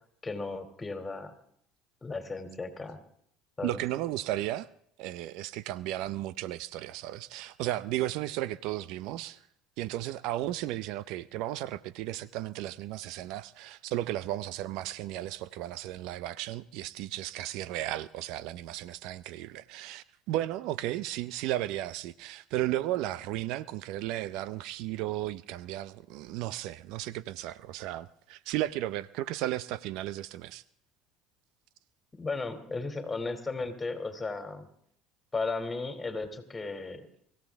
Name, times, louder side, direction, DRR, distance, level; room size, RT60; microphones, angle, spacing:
voice 1, 0.2-1.3 2.0-3.0 3.6-3.8 32.2-34.7 35.3-37.1, left 3 dB, 20° left, 2.8 m, -35 dB
voice 2, 3.6-4.7 5.0-9.4 9.8-30.6, right 14 dB, 70° right, 0.5 m, -34 dB
24.5 x 15.5 x 3.5 m
supercardioid pair, 80°, 0 cm